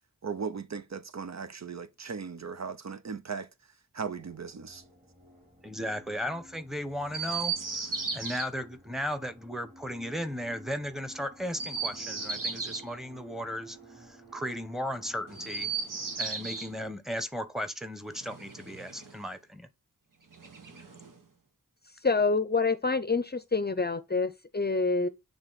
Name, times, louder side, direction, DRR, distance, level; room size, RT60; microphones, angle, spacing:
voice 1, 0.2-3.5 3.9-4.8, right 5 dB, 55° right, 0.7 m, -37 dB
sound 1, 4.1-16.9, right 1 dB, 25° right, 3.5 m, -54 dB
voice 2, 5.6-7.6 7.8-15.7 16.2-19.7, equal, ahead, 1.2 m, -36 dB
Chirp tweet, 7.1-8.5 11.5-12.9 15.3-16.7 18.1-19.2 20.3-21.2, right 4 dB, 70° right, 1.4 m, -35 dB
voice 3, 22.0-25.1, left 4 dB, 30° left, 0.6 m, -27 dB
8.9 x 3.5 x 4.1 m
cardioid pair, 50°, 33 cm